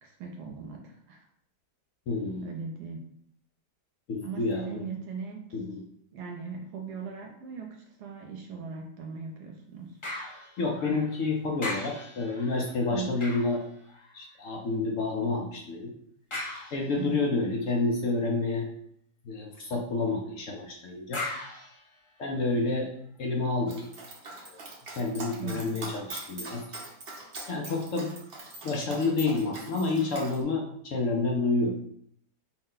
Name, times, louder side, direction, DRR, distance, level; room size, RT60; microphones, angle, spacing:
voice 1, 0.0-1.2 2.4-3.0 4.2-5.5 6.1-10.0 12.9-13.1 17.0-17.2 25.4-25.7, right 5 dB, 80° right, 1 dB, 1.2 m, -39 dB
voice 2, 2.1-2.5 4.1-4.8 5.5-5.8 10.6-13.6 14.1-15.9 16.7-18.7 19.2-21.2 22.2-22.9 23.2-23.8 24.2-24.6 24.9-26.6 27.5-28.1 28.6-31.7, left 3 dB, 70° left, 1 dB, 0.8 m, -29 dB
sound 1, 10.0-11.2 11.6-14.4 16.3-17.3 21.1-22.6 23.2-23.3, left 2 dB, 35° left, 0.4 m, -40 dB
Dog, 23.7-30.4, right 2 dB, 50° right, 0.8 m, -42 dB
4.4 x 2.1 x 3.7 m, 0.68 s
omnidirectional pair, 1.8 m